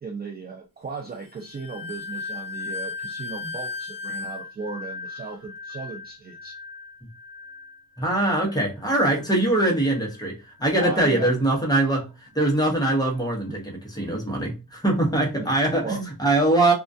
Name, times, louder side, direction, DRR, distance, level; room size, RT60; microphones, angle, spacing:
voice 1, 0.0-6.6 10.8-11.3 13.5-13.6 15.3-15.5 15.8-16.0, right 4 dB, 30° right, 0.3 m, -36 dB
sound 1, 1.2-10.2 10.5-11.0 11.5-11.7, left 4 dB, 65° right, 1.0 m, -37 dB
voice 2, 8.0-12.1 12.3-16.7, right 2 dB, 10° left, 0.7 m, -22 dB
2.2 x 2.2 x 2.5 m
wide cardioid pair, 135°, 35 cm